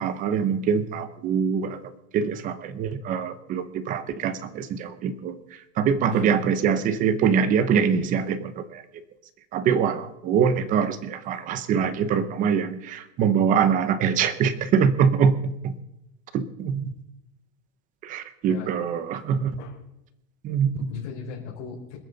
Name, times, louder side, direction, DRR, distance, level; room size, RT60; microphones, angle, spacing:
voice 1, 0.0-1.8 2.1-5.4 5.8-8.8 9.5-15.7 16.3-16.9 18.0-19.6 20.4-20.9, right 7 dB, 20° right, 12 dB, 0.8 m, -24 dB
voice 2, 20.7-22.0, left 6 dB, 65° left, -5 dB, 4.7 m, -38 dB
27.0 x 9.0 x 4.0 m, 0.84 s
supercardioid pair, 175°, 38 cm